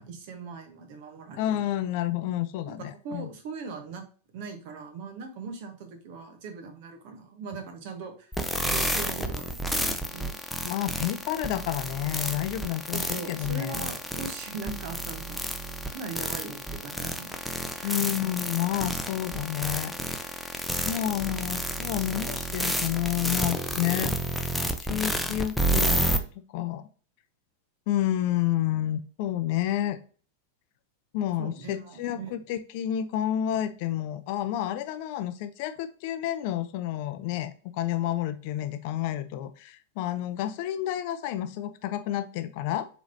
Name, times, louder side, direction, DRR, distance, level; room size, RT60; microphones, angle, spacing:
voice 1, 0.0-1.7 2.7-2.8 3.0-4.0 4.3-8.3 8.6-10.4 12.9-15.5 15.8-18.2 31.4-32.4, right 4 dB, 50° right, 5 dB, 1.2 m, -40 dB
voice 2, 1.4-3.3 10.6-13.9 17.8-26.1 26.5-26.8 27.9-30.0 31.1-42.9, left 12 dB, 45° left, 11 dB, 0.5 m, -30 dB
sound 1, 8.3-26.2, right 1 dB, ahead, 0.6 m, -30 dB
4.8 x 4.0 x 2.8 m, 0.39 s
figure-of-eight pair, 90°, 0 cm